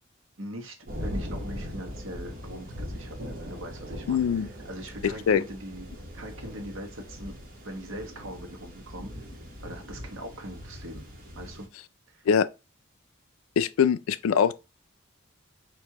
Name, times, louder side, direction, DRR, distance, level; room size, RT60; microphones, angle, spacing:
voice 1, 0.4-5.9 6.1-7.4 7.6-9.3 9.6-11.1 11.4-11.7 12.1-12.3, equal, 70° right, 1.1 m, -41 dB
sound 1, 0.8-11.7, equal, 45° right, 1.3 m, -40 dB
voice 2, 4.1-4.5 5.3-5.4 12.3-12.5 13.6-14.5, left 7 dB, 85° left, 0.3 m, -22 dB
4.7 x 2.6 x 3.5 m
head